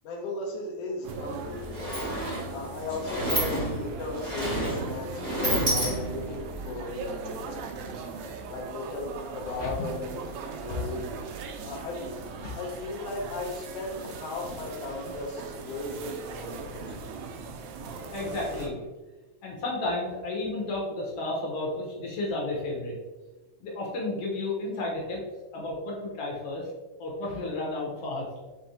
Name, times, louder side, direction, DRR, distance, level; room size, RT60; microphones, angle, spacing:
voice 1, 0.0-2.0 2.5-7.7 8.5-11.1 11.7-12.2 12.6-16.9, left 2 dB, 80° left, -2 dB, 1.4 m, -36 dB
sound 1, 1.0-18.7, right 4 dB, 80° right, 2.0 m, -39 dB
Sliding door, 1.1-1.2 1.4-6.4, right 1 dB, 40° right, 0.5 m, -30 dB
voice 2, 9.5-9.9 10.7-10.9 11.6-11.7 12.4-12.5 18.1-18.8 19.4-23.0 23.6-25.2 25.5-26.7 27.0-28.3, left 2 dB, 60° left, -3 dB, 1.8 m, -32 dB
5.6 x 3.3 x 2.7 m, 1.2 s
omnidirectional pair, 3.5 m